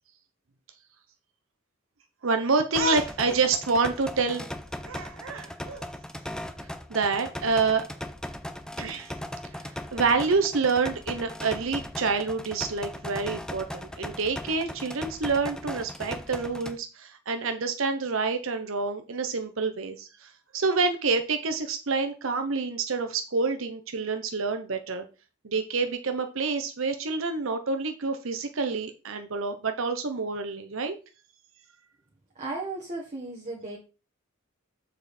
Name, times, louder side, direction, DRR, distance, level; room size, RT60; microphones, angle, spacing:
voice 1, 2.2-4.4 4.8-5.9 6.9-7.9 8.8-9.1 9.9-25.1 25.4-31.0, right 4 dB, 65° right, 0.8 m, -27 dB
sound 1, 2.8-16.8, left 1 dB, 5° left, 0.5 m, -38 dB
voice 2, 32.3-33.8, right 2 dB, 30° right, 1.3 m, -35 dB
7.1 x 4.9 x 4.2 m
head